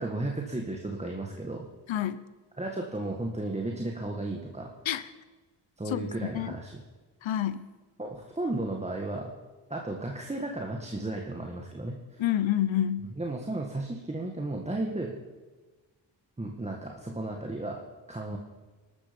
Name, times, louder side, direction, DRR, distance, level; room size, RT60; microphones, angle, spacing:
voice 1, 0.0-1.7 2.6-4.7 5.8-6.8 8.0-9.3 9.7-12.2 13.0-15.2 16.4-17.8 18.1-18.4, right 2 dB, 15° right, 1 dB, 1.8 m, -34 dB
voice 2, 1.9-2.2 4.9-5.0 5.9-6.0 6.3-6.5 7.2-7.6 12.2-13.1, left 11 dB, 85° left, 15 dB, 1.0 m, -28 dB
21.5 x 12.5 x 5.4 m, 1.3 s
cardioid pair, 95°, 45 cm